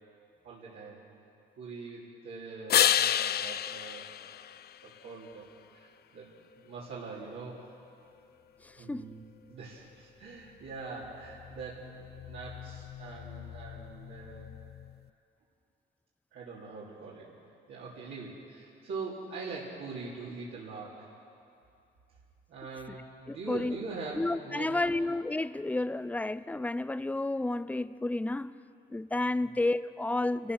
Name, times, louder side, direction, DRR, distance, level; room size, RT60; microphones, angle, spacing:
voice 1, 0.4-1.0 1.6-4.1 4.8-5.5 5.7-6.3 6.6-7.6 8.8-9.2 9.5-14.5 16.3-17.3 17.7-21.1 22.5-24.9 29.4-29.5, right 4 dB, 80° right, -8 dB, 3.6 m, -43 dB
sound 1, 2.7-5.3 11.0-15.0, left 10 dB, 55° left, 0.5 m, -32 dB
voice 2, 23.3-23.8 24.2-28.5 28.9-30.5, left 2 dB, 5° left, 15 dB, 0.5 m, -31 dB
29.5 x 14.5 x 6.3 m, 2.6 s
cardioid pair, 90°, 20 cm